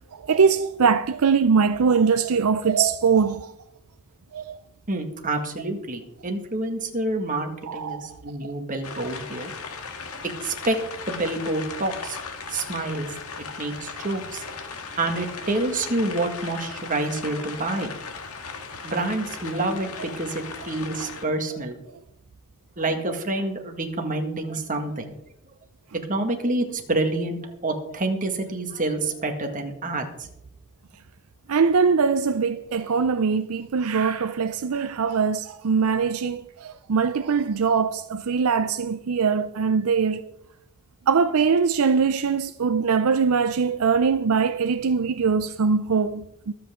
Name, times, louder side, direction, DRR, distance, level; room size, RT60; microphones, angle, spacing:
voice 1, 0.1-3.5 4.3-4.6 7.7-8.0 8.4-8.5 31.5-40.2 41.1-46.5, right 5 dB, 70° right, 0.5 m, -22 dB
voice 2, 4.9-9.5 10.4-10.8 11.0-12.2 12.5-14.4 15.0-18.0 18.8-21.8 22.8-25.2 25.9-30.3, right 2 dB, 35° right, 1.9 m, -28 dB
sound 1, 8.8-21.2, left 5 dB, 80° left, 1.7 m, -37 dB
23.5 x 8.1 x 3.7 m
head